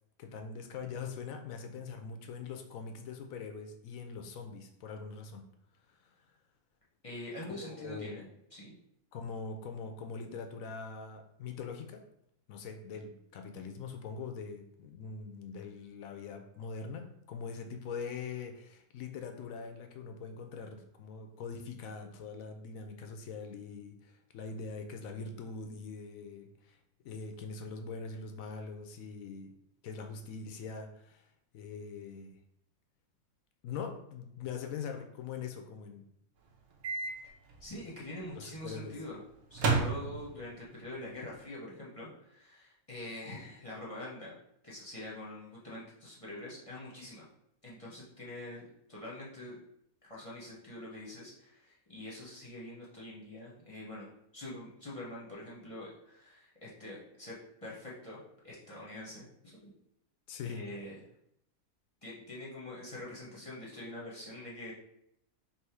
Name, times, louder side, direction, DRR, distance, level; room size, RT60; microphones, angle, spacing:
voice 1, 0.2-5.5 5.9-6.2 7.5-8.2 9.1-12.0 12.5-26.8 27.0-29.6 29.8-32.4 33.6-36.0 38.3-39.0 60.3-60.6, left 5 dB, 75° left, 6 dB, 1.0 m, -42 dB
voice 2, 7.0-8.7 37.6-39.2 39.5-44.3 44.6-47.3 47.6-48.6 48.9-49.6 50.0-58.2 58.4-59.7 60.4-61.0 62.0-64.7, left 1 dB, 25° left, -6 dB, 0.9 m, -45 dB
Microwave oven, 36.8-37.1 37.5-37.6 39.5-40.6, right 4 dB, 75° right, 1.2 m, -31 dB
3.4 x 3.0 x 4.4 m, 0.76 s
omnidirectional pair, 1.5 m